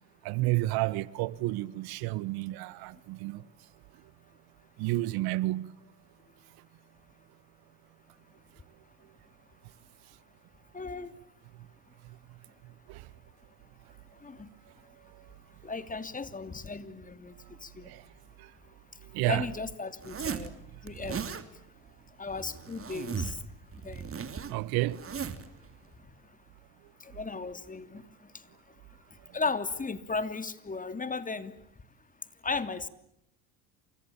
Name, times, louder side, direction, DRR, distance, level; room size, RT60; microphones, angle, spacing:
voice 1, 0.2-3.4 4.8-5.8 12.9-13.1 15.0-15.3 17.8-18.1 18.4-18.5 19.0-19.4 24.5-25.2, right 18 dB, 70° right, 1.3 m, -31 dB
voice 2, 10.7-11.1 14.2-14.5 15.6-17.3 17.6-17.9 19.2-21.2 22.2-23.4 23.8-24.1 27.0-28.0 29.3-31.5 32.4-32.9, left 4 dB, 20° left, 3.0 m, -35 dB
Zipper (clothing), 20.0-20.5 20.9-21.4 22.3-23.4 23.7-25.5, right 6 dB, 35° right, 3.3 m, -37 dB
29.5 x 27.5 x 7.3 m
supercardioid pair, 85°, 38 cm